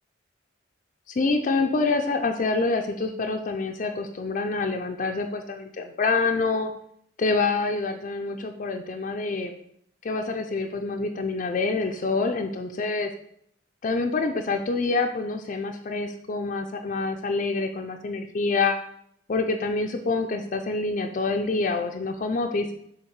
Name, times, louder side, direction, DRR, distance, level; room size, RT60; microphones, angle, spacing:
voice 1, 1.1-6.7 7.2-9.5 10.0-13.1 13.8-18.8 19.3-22.7, left 3 dB, 40° left, 4 dB, 0.4 m, -26 dB
6.4 x 3.4 x 4.6 m, 0.71 s
head